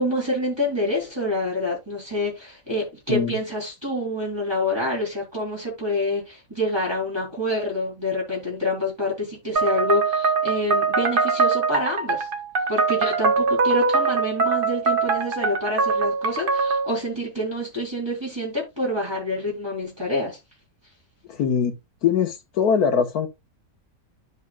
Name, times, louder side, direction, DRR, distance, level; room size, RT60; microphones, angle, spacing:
voice 1, 0.0-12.3 12.7-20.4, left 1 dB, 15° right, 3.6 m, -27 dB
sound 1, 9.6-16.9, right 4 dB, 40° right, 1.0 m, -22 dB
voice 2, 21.2-21.8 22.0-23.3, left 7 dB, 65° left, 1.7 m, -22 dB
12.5 x 5.1 x 2.3 m
omnidirectional pair, 1.8 m